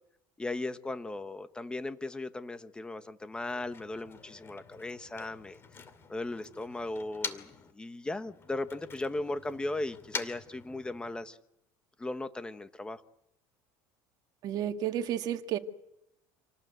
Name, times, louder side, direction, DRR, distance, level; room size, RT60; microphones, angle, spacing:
voice 1, 0.4-5.6 6.1-11.4 12.0-13.0, left 2 dB, 10° left, 11 dB, 1.2 m, -37 dB
Motor vehicle (road), 3.3-7.7 8.0-11.3, left 5 dB, 30° left, 2.5 m, -45 dB
voice 2, 14.4-15.6, right 10 dB, 50° right, 6 dB, 1.8 m, -31 dB
28.0 x 19.0 x 8.1 m, 0.85 s
cardioid pair, 130°, 9 cm